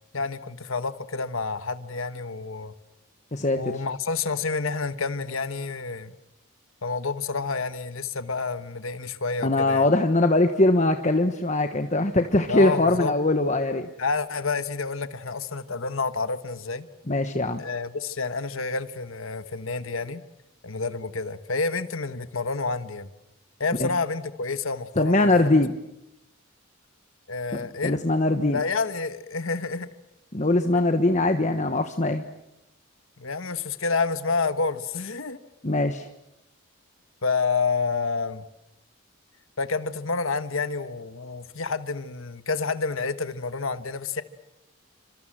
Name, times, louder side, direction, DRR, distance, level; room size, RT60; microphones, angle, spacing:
voice 1, 0.1-2.7 3.5-6.1 6.8-9.9 12.5-13.1 14.0-16.9 17.6-20.2 20.6-23.1 23.6-25.5 27.3-28.0 28.5-29.9 33.2-35.4 37.2-38.4 39.6-44.2, left 4 dB, 75° left, 11 dB, 1.3 m, -29 dB
voice 2, 3.3-3.7 9.4-13.9 17.1-17.6 23.8-23.9 25.0-25.7 27.5-28.6 30.3-32.2 35.6-36.1, left 2 dB, 35° left, 6 dB, 1.3 m, -22 dB
28.0 x 26.0 x 7.6 m, 0.87 s
head